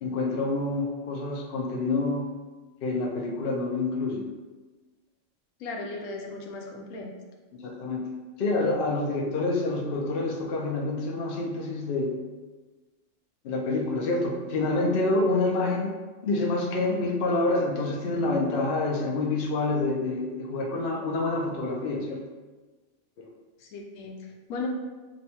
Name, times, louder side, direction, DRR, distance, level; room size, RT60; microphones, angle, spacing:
voice 1, 0.0-2.3 2.8-4.2 7.6-8.1 8.4-12.2 13.4-15.9 16.2-22.2 23.2-23.3, left 2 dB, 55° left, 0 dB, 0.7 m, -27 dB
voice 2, 5.6-7.1 23.6-24.7, left 3 dB, 90° left, 0 dB, 1.0 m, -36 dB
6.1 x 2.2 x 2.8 m, 1.3 s
omnidirectional pair, 1.3 m